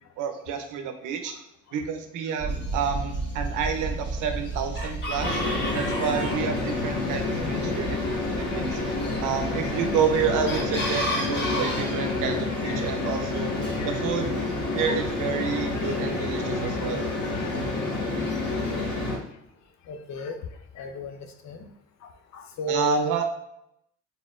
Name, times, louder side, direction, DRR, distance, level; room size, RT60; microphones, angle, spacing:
voice 1, 0.2-1.4 1.7-5.4 5.7-8.0 8.3-13.6 13.9-14.4 14.7-17.0 22.7-23.2, right 7 dB, 90° right, 7 dB, 0.6 m, -29 dB
sound 1, 2.4-11.0, right 2 dB, 10° left, 1.4 m, -35 dB
Chicken rooster, 2.5-19.1, left 1 dB, 35° left, 1.3 m, -38 dB
sound 2, 5.1-19.2, left 2 dB, 85° left, 1.3 m, -29 dB
voice 2, 7.3-7.8 12.6-12.8 13.8-14.0 14.9-15.0 15.4-15.9 17.3-17.5 19.9-20.4 20.8-21.1 21.4-21.6 22.3-23.2, equal, 65° left, 6 dB, 0.7 m, -34 dB
4.2 x 3.7 x 2.4 m, 0.78 s
cardioid pair, 90°, 30 cm